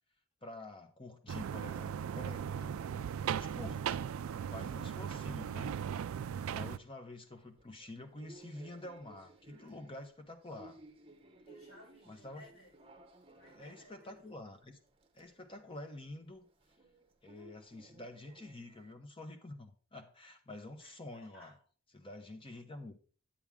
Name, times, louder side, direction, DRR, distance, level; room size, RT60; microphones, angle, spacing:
voice 1, 0.4-2.7 3.2-4.0 4.5-5.7 6.4-10.8 12.1-12.4 13.5-14.8 15.1-16.4 17.2-21.5 21.9-22.9, left 2 dB, 25° left, 6 dB, 1.0 m, -48 dB
sound 1, 1.3-6.8, right 8 dB, 75° right, 0.3 m, -38 dB
sound 2, 7.2-18.9, right 1 dB, 25° right, 0.9 m, -60 dB
voice 2, 11.5-12.9 13.3-14.4 20.8-21.6, equal, 65° left, -4 dB, 4.8 m, -59 dB
9.0 x 8.6 x 3.6 m, 0.40 s
head